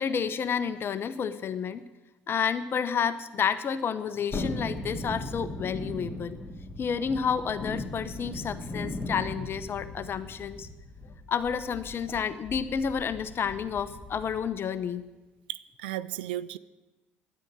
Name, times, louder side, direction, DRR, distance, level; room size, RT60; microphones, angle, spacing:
voice 1, 0.0-1.8 2.3-6.4 6.8-10.7 11.3-15.0, left 7 dB, 45° left, 0.8 m, -30 dB
Thunderstorm, 4.3-14.5 14.9-15.0, left 2 dB, 20° left, 2.5 m, -38 dB
voice 2, 15.5-16.6, right 13 dB, 85° right, 0.4 m, -35 dB
10.0 x 10.0 x 8.9 m
hypercardioid pair, 55°, 5 cm